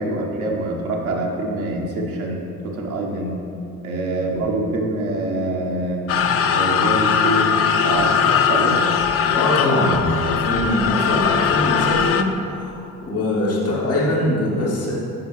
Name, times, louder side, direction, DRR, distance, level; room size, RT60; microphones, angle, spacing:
voice 1, 0.0-3.4 3.8-6.0 6.5-7.5 7.8-8.8, right 2 dB, 80° right, -1 dB, 0.9 m, -25 dB
sound 1, 6.1-12.2, left 7 dB, 35° left, 0.4 m, -19 dB
voice 2, 9.3-14.9, left 1 dB, 85° left, -7 dB, 1.5 m, -22 dB
8.8 x 5.5 x 3.1 m, 2.7 s
figure-of-eight pair, 40°, 42 cm